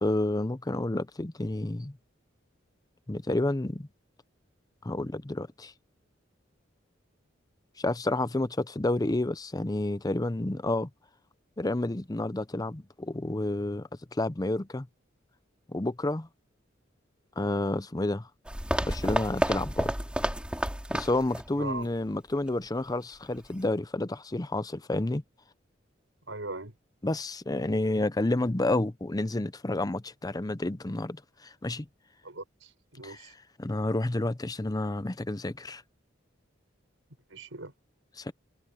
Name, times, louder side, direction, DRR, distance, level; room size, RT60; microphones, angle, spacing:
voice 1, 0.0-2.0 3.1-3.9 4.8-5.7 7.8-10.9 11.6-14.9 15.7-16.3 17.4-18.3 18.8-19.9 20.9-25.2 27.0-31.9 33.0-33.3 33.6-35.8 38.2-38.3, left 2 dB, 20° left, 0.7 m, -30 dB
sound 1, 18.5-21.5 21.8-21.9 22.5-22.6, right 1 dB, 5° right, 2.9 m, -30 dB
voice 2, 21.6-21.9 26.3-26.7 32.2-33.3 37.3-37.7, right 2 dB, 85° right, 5.5 m, -39 dB
head